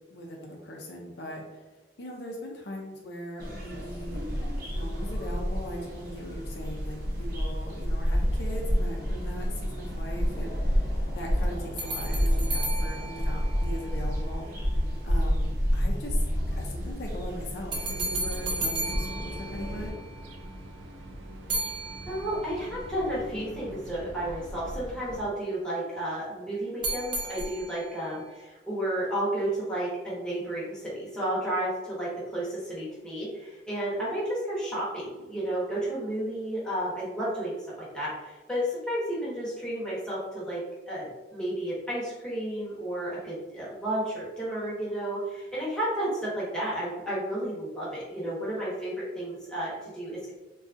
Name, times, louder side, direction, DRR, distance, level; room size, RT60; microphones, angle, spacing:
voice 1, 0.1-1.7 2.0-4.2 4.7-14.7 15.0-16.2 16.5-19.9, equal, 60° left, -1 dB, 0.5 m, -40 dB
sound 1, 3.4-19.9, equal, 50° right, 0.8 m, -29 dB
sound 2, 11.8-14.2 17.7-20.2 21.5-22.7 26.8-28.1, right 2 dB, 25° right, 0.4 m, -34 dB
sound 3, 17.9-25.2, right 1 dB, 85° right, 0.4 m, -43 dB
voice 2, 22.1-37.5 37.8-40.6 40.9-50.3, right 1 dB, 5° left, -8 dB, 0.9 m, -32 dB
3.7 x 2.3 x 2.5 m, 1.2 s
head